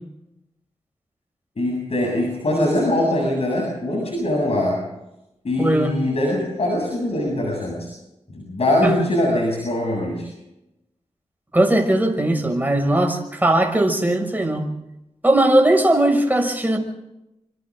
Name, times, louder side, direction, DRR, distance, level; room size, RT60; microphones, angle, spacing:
voice 1, 1.6-4.9 5.4-7.9 8.3-10.3, left 1 dB, 65° left, -1 dB, 7.8 m, -22 dB
voice 2, 5.6-5.9 8.8-8.9 11.5-14.7 15.2-16.8, right 1 dB, 15° right, 3 dB, 6.3 m, -18 dB
28.5 x 25.5 x 3.8 m, 0.91 s
wide cardioid pair, 75°, 11 cm